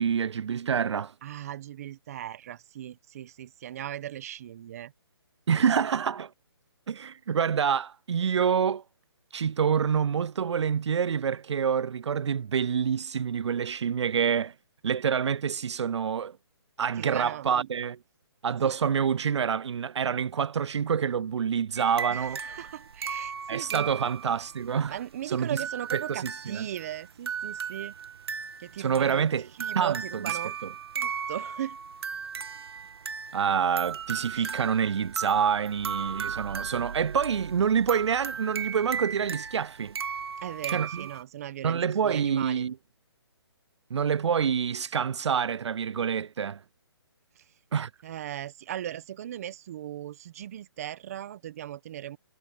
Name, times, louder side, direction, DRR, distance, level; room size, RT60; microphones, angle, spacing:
voice 1, 0.0-1.1 5.5-6.3 6.9-8.8 9.3-14.5 14.8-16.4 16.8-18.0 18.4-22.4 23.5-25.0 25.3-25.5 25.9-26.0 26.5-26.7 28.8-29.5 29.8-30.0 33.3-39.9 40.7-41.1 41.6-42.7 43.9-46.6 47.7-47.9, right 7 dB, 90° right, 0.4 m, -27 dB
voice 2, 1.2-4.9 17.0-17.7 18.6-18.7 22.1-24.1 24.9-27.9 28.6-29.2 29.5-30.5 30.9-31.8 34.3-34.6 40.4-42.7 47.3-47.4 48.0-52.2, right 11 dB, 35° right, 1.3 m, -38 dB
sound 1, 21.8-41.2, right 6 dB, 65° right, 1.8 m, -36 dB
hypercardioid pair, 160°, 14 cm